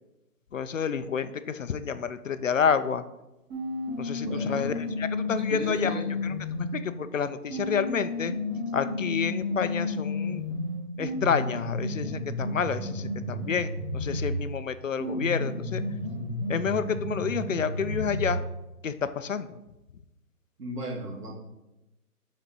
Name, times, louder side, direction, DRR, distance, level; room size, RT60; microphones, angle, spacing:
voice 1, 0.5-3.0 4.0-8.3 8.7-10.5 11.0-15.8 16.5-18.4 18.8-19.6, left 6 dB, 55° left, 12 dB, 0.5 m, -29 dB
sound 1, 3.5-6.8 7.5-14.5 15.0-18.5, left 2 dB, 30° right, 2.6 m, -32 dB
voice 2, 4.2-4.7 5.5-6.2 20.6-21.3, right 2 dB, 80° right, 0 dB, 2.4 m, -36 dB
6.8 x 4.1 x 6.1 m, 0.97 s
hypercardioid pair, 175°, 46 cm